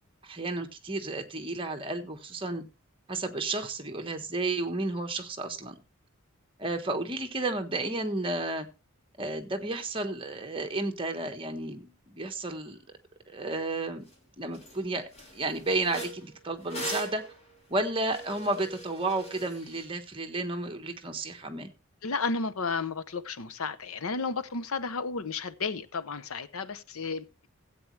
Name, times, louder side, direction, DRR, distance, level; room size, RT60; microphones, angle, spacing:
voice 1, 0.2-2.6 3.1-5.7 6.6-8.7 9.2-12.8 13.3-14.0 14.4-15.0 15.3-17.2 17.7-21.7, right 2 dB, 25° right, 1.3 m, -32 dB
sound 1, 14.1-14.2 14.5-14.8 15.1-19.9, right 1 dB, 30° left, 3.0 m, -41 dB
voice 2, 22.0-27.5, left 4 dB, 80° left, 0.8 m, -33 dB
15.5 x 8.5 x 3.2 m
head